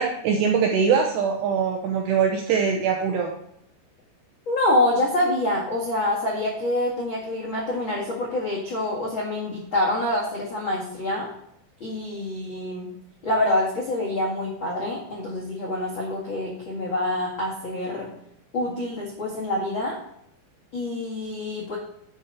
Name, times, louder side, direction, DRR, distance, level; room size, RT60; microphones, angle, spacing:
voice 1, 0.0-3.3, right 6 dB, 85° right, 2 dB, 2.4 m, -22 dB
voice 2, 4.4-11.3 11.8-12.9 13.2-18.1 18.5-20.0 20.7-21.8, left 1 dB, 90° left, -5 dB, 1.1 m, -26 dB
9.6 x 5.7 x 5.4 m, 0.75 s
omnidirectional pair, 6.0 m